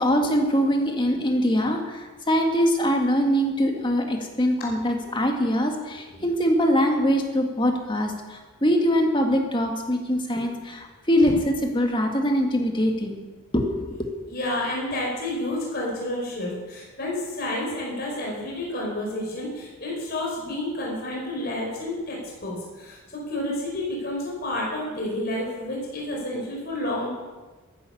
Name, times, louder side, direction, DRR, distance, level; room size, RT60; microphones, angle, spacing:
voice 1, 0.0-11.3 11.6-13.2 13.5-14.0, equal, 20° left, 3 dB, 1.9 m, -23 dB
voice 2, 14.3-23.0 23.3-27.1, left 1 dB, 45° left, -3 dB, 4.9 m, -30 dB
14.0 x 11.0 x 7.1 m, 1.3 s
head